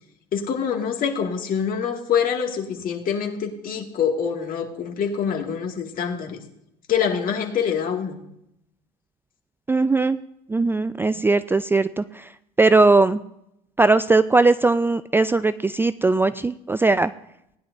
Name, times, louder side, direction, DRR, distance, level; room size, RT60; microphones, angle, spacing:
voice 1, 0.3-6.4 6.9-8.2, left 7 dB, 50° left, 2 dB, 2.1 m, -25 dB
voice 2, 9.7-10.2 10.5-12.3 12.6-13.2 13.8-17.1, right 3 dB, 10° right, 14 dB, 0.4 m, -19 dB
19.0 x 10.5 x 2.6 m, 0.80 s
hypercardioid pair, 70°, 19 cm